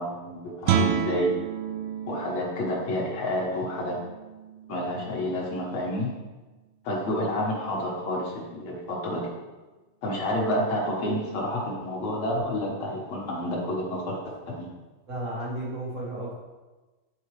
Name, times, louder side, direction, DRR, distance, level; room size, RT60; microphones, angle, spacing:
voice 1, 0.0-1.3 2.1-4.0 4.7-6.1 6.8-9.3 10.0-14.2 14.5-14.7, left 1 dB, 55° left, -3 dB, 2.0 m, -29 dB
Guitar, 0.6-6.2, right 8 dB, 80° right, 2.2 m, -31 dB
voice 2, 15.1-16.3, right 1 dB, 60° right, -6 dB, 0.8 m, -33 dB
10.5 x 4.6 x 3.2 m, 1.2 s
omnidirectional pair, 4.4 m